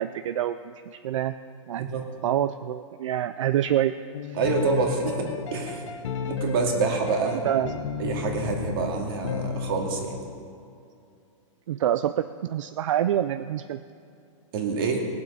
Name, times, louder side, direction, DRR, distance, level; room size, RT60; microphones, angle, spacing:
voice 1, 0.0-1.4 1.7-1.9 2.2-4.0 4.3-4.4 7.4-7.8 11.7-13.8, right 11 dB, 70° right, 12 dB, 0.4 m, -26 dB
sound 1, 4.1-10.2, left 6 dB, 65° left, 1.0 m, -33 dB
voice 2, 4.4-5.9 6.2-7.5 8.0-10.2 14.5-15.0, right 4 dB, 45° right, 1 dB, 2.1 m, -27 dB
19.5 x 7.6 x 5.5 m, 2.5 s
hypercardioid pair, 165°, 17 cm